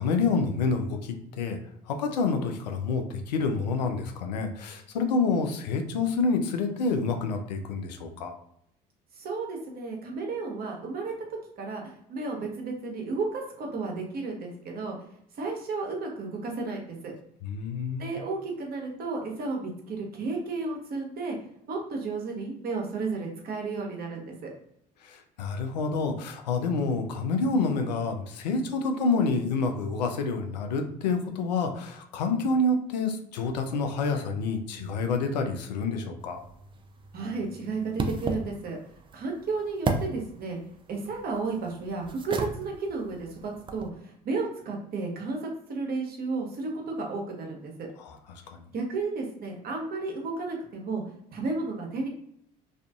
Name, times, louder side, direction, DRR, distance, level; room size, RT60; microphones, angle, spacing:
voice 1, 0.0-1.6 1.9-8.3 17.4-18.1 25.0-36.4 48.0-48.4, left 3 dB, 85° left, 5 dB, 0.4 m, -28 dB
voice 2, 9.1-11.1 11.6-15.0 15.3-17.1 18.0-21.4 21.7-24.5 37.1-38.8 39.1-40.6 40.9-47.9 48.7-52.1, right 3 dB, 45° right, 1 dB, 0.9 m, -33 dB
sound 1, 36.2-43.9, right 3 dB, 25° right, 0.4 m, -36 dB
2.4 x 2.4 x 2.3 m, 0.71 s
hypercardioid pair, 60°, 21 cm